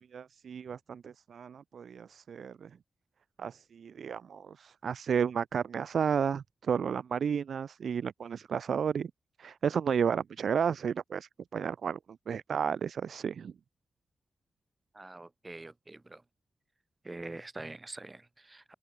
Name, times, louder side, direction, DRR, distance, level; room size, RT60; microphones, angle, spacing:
voice 1, 0.1-2.7 3.4-9.1 9.4-12.0 12.3-13.5, right 7 dB, 80° right, 1.3 m, -32 dB
voice 2, 14.9-16.2 17.0-18.7, right 2 dB, 20° right, 1.9 m, -45 dB
wide cardioid pair, 165°, 0 cm